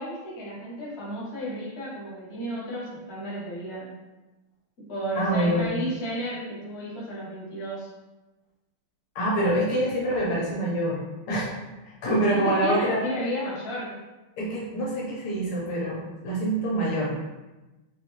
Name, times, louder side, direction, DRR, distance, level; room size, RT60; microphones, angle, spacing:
voice 1, 0.0-3.9 4.8-7.9 12.3-13.9, equal, 35° left, -8 dB, 1.3 m, -33 dB
voice 2, 5.1-5.7 9.1-11.0 11.3-11.5 11.8-13.1 14.4-17.1, right 1 dB, 75° left, -5 dB, 1.8 m, -25 dB
4.3 x 2.7 x 3.0 m, 1.1 s
omnidirectional pair, 2.4 m